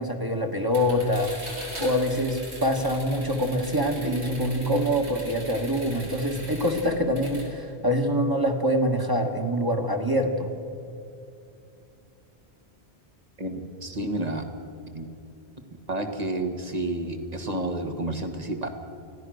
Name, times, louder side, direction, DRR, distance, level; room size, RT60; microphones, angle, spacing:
voice 1, 0.0-10.5, equal, 20° right, 2 dB, 1.8 m, -25 dB
sound 1, 0.7-7.5, right 1 dB, 90° right, 4.7 m, -41 dB
voice 2, 13.4-14.4 14.9-15.1 15.9-18.7, right 1 dB, 35° right, 6 dB, 1.9 m, -30 dB
25.5 x 16.5 x 6.5 m, 2.7 s
omnidirectional pair, 1.1 m